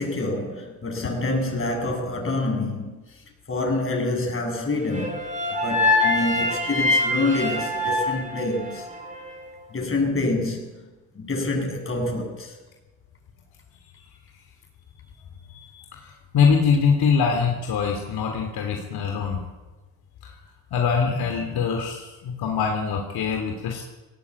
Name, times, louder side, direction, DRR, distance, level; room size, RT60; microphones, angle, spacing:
voice 1, 0.0-3.2 3.5-5.2 5.6-8.9 9.7-10.9 11.1-12.6, left 2 dB, 30° left, 7.9 m, -27 dB
sound 1, 4.9-9.1, left 2 dB, 20° right, 6.6 m, -24 dB
voice 2, 15.5-16.1 16.3-19.4 20.2-20.3 20.7-23.8, left 6 dB, 65° left, 3.5 m, -23 dB
18.5 x 18.0 x 8.7 m
supercardioid pair, 75°, 40 cm